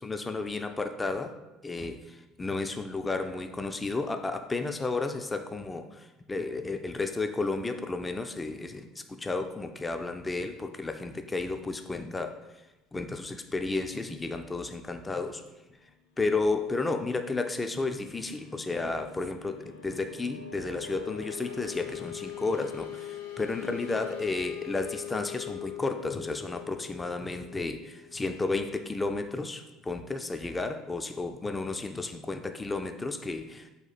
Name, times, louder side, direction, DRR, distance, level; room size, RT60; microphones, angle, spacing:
voice 1, 0.0-1.3 1.6-12.7 12.9-15.4 15.8-15.9 16.2-33.7, left 3 dB, 20° left, 7 dB, 0.3 m, -32 dB
sound 1, 16.4-28.9, left 11 dB, 80° left, 0.5 m, -43 dB
4.0 x 2.4 x 4.1 m, 1.0 s
figure-of-eight pair, 60°, 0 cm